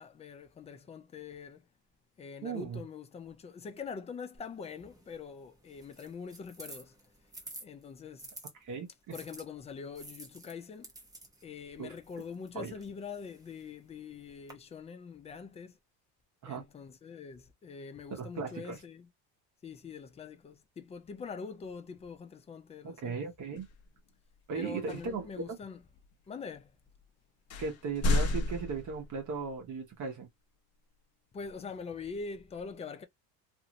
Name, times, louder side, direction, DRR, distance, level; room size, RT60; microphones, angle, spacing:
voice 1, 0.0-1.7 2.2-6.9 7.6-8.3 9.1-10.9 11.4-15.8 16.4-19.1 19.6-23.2 24.5-25.8 26.3-26.7 31.3-33.1, left 5 dB, 15° left, 0.4 m, -44 dB
voice 2, 2.4-2.8 8.6-9.1 11.8-11.9 12.5-12.7 16.4-16.6 18.1-18.8 22.8-23.7 24.5-25.5 27.6-30.3, right 5 dB, 45° right, 1.1 m, -37 dB
sound 1, 4.3-8.5 9.1-14.5, right 2 dB, 10° right, 0.8 m, -52 dB
sound 2, 23.6-23.8 24.9-25.3 26.0-26.1 26.9-27.0 27.5-29.4, left 2 dB, 35° left, 0.8 m, -31 dB
2.6 x 2.5 x 2.9 m
supercardioid pair, 120°, 42 cm